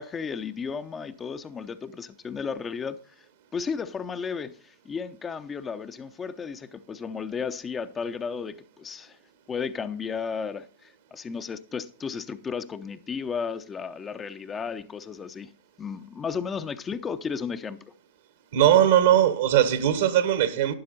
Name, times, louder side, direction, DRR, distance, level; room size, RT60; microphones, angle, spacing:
voice 1, 0.0-3.3 3.5-9.2 9.5-15.5 15.8-17.8, left 6 dB, 20° left, 0.7 m, -34 dB
voice 2, 18.5-20.7, right 11 dB, 60° right, 1.4 m, -20 dB
12.0 x 10.5 x 4.0 m
figure-of-eight pair, 90°, 0 cm